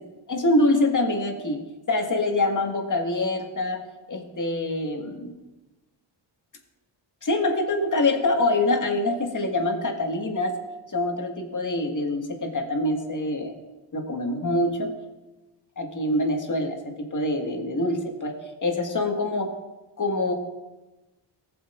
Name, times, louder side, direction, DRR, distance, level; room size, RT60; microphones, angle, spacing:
voice 1, 0.3-1.6 1.9-3.8 4.1-5.3 7.2-10.5 10.9-13.5 13.9-14.9 15.8-18.3 18.6-19.5 20.0-20.3, left 2 dB, 35° left, 2 dB, 1.8 m, -25 dB
15.5 x 7.0 x 2.6 m, 1.1 s
supercardioid pair, 50°, 50 cm